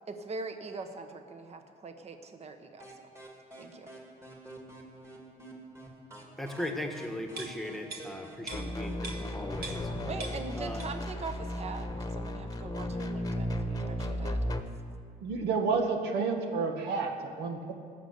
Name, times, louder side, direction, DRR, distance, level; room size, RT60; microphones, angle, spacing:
voice 1, 0.1-2.8 3.6-3.9 10.1-14.5, right 3 dB, 40° right, 7 dB, 1.3 m, -42 dB
sound 1, 2.8-10.4, right 1 dB, 15° right, 2.5 m, -49 dB
voice 2, 6.4-9.9 10.5-10.8, left 1 dB, ahead, 4 dB, 1.4 m, -38 dB
sound 2, 7.4-9.9 10.2-11.2 11.5-11.6, right 3 dB, 65° right, 1.9 m, -43 dB
sound 3, 8.5-14.6, left 1 dB, 20° left, 1.2 m, -34 dB
voice 3, 15.2-17.7, right 4 dB, 80° right, 3 dB, 1.8 m, -30 dB
18.5 x 7.0 x 8.3 m, 2.2 s
cardioid pair, 110°, 17 cm